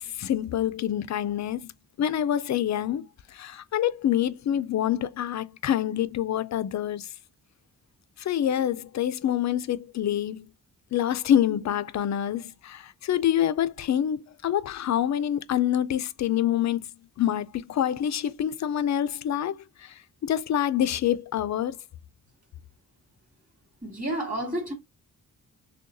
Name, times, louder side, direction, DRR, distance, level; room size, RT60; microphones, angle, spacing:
voice 1, 0.0-1.7 2.0-7.1 8.2-10.5 10.9-16.9 17.2-21.8, left 10 dB, 55° left, 0.4 m, -26 dB
voice 2, 23.8-24.7, right 1 dB, 25° right, 2.2 m, -30 dB
6.3 x 2.3 x 2.6 m
wide cardioid pair, 140°, 35 cm